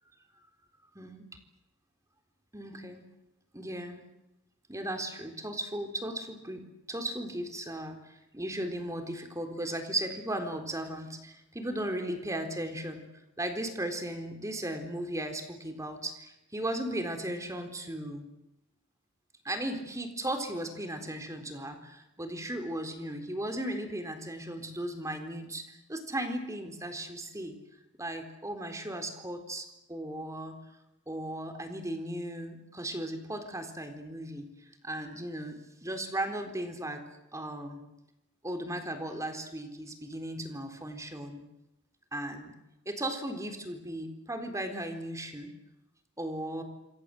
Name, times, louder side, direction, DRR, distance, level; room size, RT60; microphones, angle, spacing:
voice 1, 0.9-1.3 2.5-3.1 3.5-4.0 4.7-13.0 13.4-18.3 19.4-27.6 28.0-30.6 31.1-34.5 34.8-37.0 37.3-37.8 38.4-41.4 42.1-42.6 42.9-45.5 46.2-46.6, right 1 dB, 15° right, 7 dB, 3.9 m, -36 dB
27.5 x 24.5 x 7.9 m, 0.93 s
head